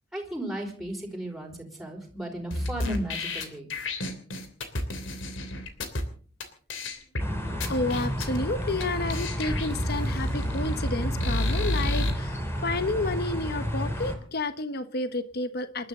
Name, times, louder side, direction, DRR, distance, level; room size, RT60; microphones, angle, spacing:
voice 1, 0.1-3.7, equal, ahead, -1 dB, 4.9 m, -35 dB
sound 1, 2.5-6.0 6.4-6.5 6.7-7.2 7.6-8.4 8.8-8.9 9.1-12.1, left 1 dB, 80° left, 3.1 m, -30 dB
sound 2, 7.2-14.2, equal, 15° left, 3.4 m, -32 dB
voice 2, 7.4-15.9, left 2 dB, 55° left, 11 dB, 1.3 m, -31 dB
28.0 x 12.0 x 3.8 m, 0.42 s
head